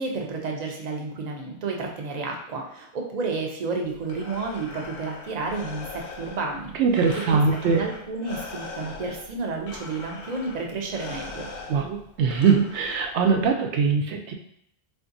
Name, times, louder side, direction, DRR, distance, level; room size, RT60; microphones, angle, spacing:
voice 1, 0.0-6.7 7.3-11.5, right 3 dB, 50° right, 1 dB, 0.6 m, -31 dB
Breathing, 3.8-13.5, left 4 dB, 80° left, 0.9 m, -41 dB
voice 2, 6.8-7.8 11.7-14.3, right 5 dB, 85° right, 3 dB, 0.9 m, -22 dB
3.6 x 2.6 x 2.5 m, 0.76 s
omnidirectional pair, 1.1 m